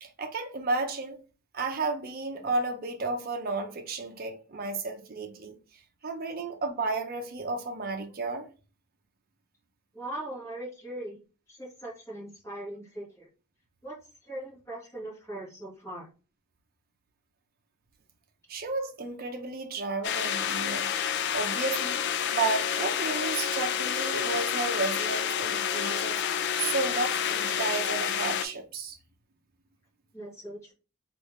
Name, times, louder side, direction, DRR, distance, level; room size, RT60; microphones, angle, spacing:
voice 1, 0.0-1.2 1.5-5.6 6.0-8.5 18.5-22.0 22.3-26.2 26.6-29.0, right 3 dB, 45° right, 0.6 m, -32 dB
voice 2, 9.9-11.2 11.5-13.3 13.8-16.1 30.1-30.7, right 1 dB, 15° left, 1.4 m, -40 dB
sound 1, 20.0-28.4, left 8 dB, 55° left, 0.3 m, -29 dB
3.3 x 2.5 x 3.1 m
head